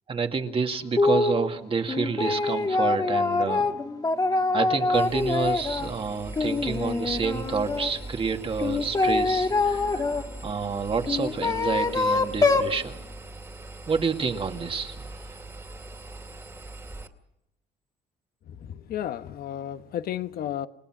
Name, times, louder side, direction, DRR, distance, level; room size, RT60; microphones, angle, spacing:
voice 1, 0.1-3.7 4.5-12.9 13.9-15.4 15.6-15.7, right 5 dB, 35° right, 2.3 m, -29 dB
sound 1, 1.0-1.4 1.9-5.9 6.3-7.9 8.6-10.2 11.0-12.7, left 3 dB, 20° left, 1.6 m, -24 dB
Engine, 4.9-17.1, right 2 dB, 15° right, 2.4 m, -41 dB
voice 2, 18.5-20.7, left 11 dB, 65° left, 1.2 m, -33 dB
29.5 x 17.5 x 6.1 m
cardioid pair, 110°, 17 cm